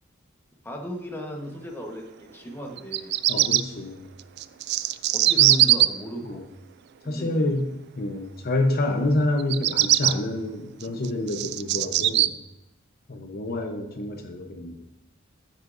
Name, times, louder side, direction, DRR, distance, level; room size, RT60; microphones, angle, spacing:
voice 1, 0.6-3.2 5.1-6.4 7.0-7.6, equal, 10° left, 1 dB, 1.2 m, -36 dB
Bird vocalization bird call bird song, 2.8-3.6 4.4-5.9 9.4-10.1 10.8-12.3, right 14 dB, 55° right, 0.3 m, -20 dB
voice 2, 3.3-4.1 5.4-5.6 6.2-6.4 7.0-7.6 8.0-12.4 13.1-14.8, left 2 dB, 50° left, 3 dB, 0.9 m, -27 dB
13.5 x 6.5 x 2.6 m, 0.90 s
head